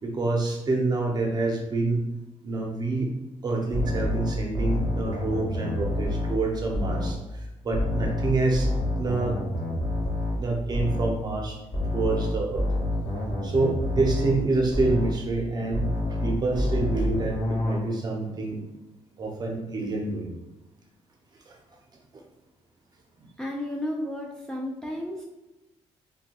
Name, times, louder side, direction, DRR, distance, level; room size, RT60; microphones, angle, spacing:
voice 1, 0.0-2.0 2.4-3.1 3.4-8.7 9.0-9.4 10.4-11.6 11.9-12.7 13.4-15.8 16.1-18.6 19.2-20.3 21.5-21.6 22.1-22.2, right 3 dB, 35° right, 0 dB, 0.6 m, -27 dB
sound 1, 3.7-7.2 7.7-11.2 11.7-15.2 15.7-17.8, left 1 dB, 40° left, 0.9 m, -28 dB
voice 2, 23.4-25.2, left 1 dB, 5° left, -1 dB, 0.3 m, -32 dB
2.7 x 2.2 x 2.8 m, 1.0 s
cardioid pair, 105°, 12 cm